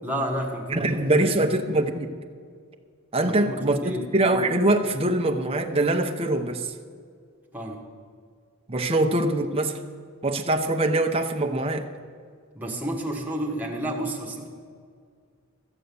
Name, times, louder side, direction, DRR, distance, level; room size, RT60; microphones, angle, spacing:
voice 1, 0.0-1.5 3.3-4.1 7.5-7.8 12.5-14.5, right 1 dB, 10° right, 1.5 m, -31 dB
voice 2, 0.7-2.2 3.1-6.7 8.7-9.8 10.2-11.9, right 2 dB, 25° right, 0.8 m, -23 dB
14.0 x 7.9 x 6.9 m
head